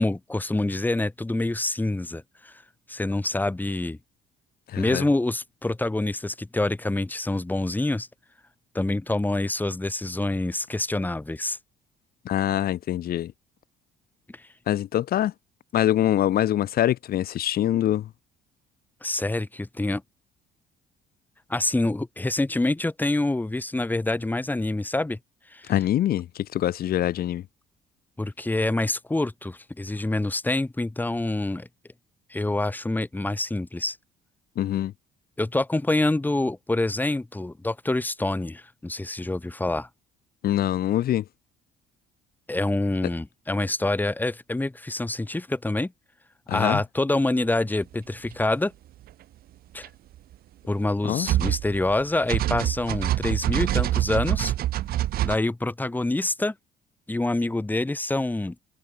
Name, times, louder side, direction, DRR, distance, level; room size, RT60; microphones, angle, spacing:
voice 1, 0.0-2.6 2.9-4.0 4.8-8.1 8.7-11.6 14.3-14.5 19.0-20.0 21.5-25.2 25.5-25.7 28.2-31.7 32.3-34.0 35.4-39.9 42.5-45.9 46.5-48.7 49.7-49.9 50.7-54.5 55.2-56.5 57.1-58.6, left 2 dB, 10° left, 4.5 m, -26 dB
voice 2, 4.7-5.0 12.2-13.3 14.7-15.3 15.7-18.1 25.7-27.4 34.6-34.9 40.4-41.2 46.5-46.8 51.0-51.3, left 12 dB, 65° left, 3.1 m, -24 dB
sound 1, 48.2-48.3 49.8-49.9 51.3-52.0 52.3-55.3, right 13 dB, 60° right, 0.9 m, -25 dB
cardioid pair, 110°, 17 cm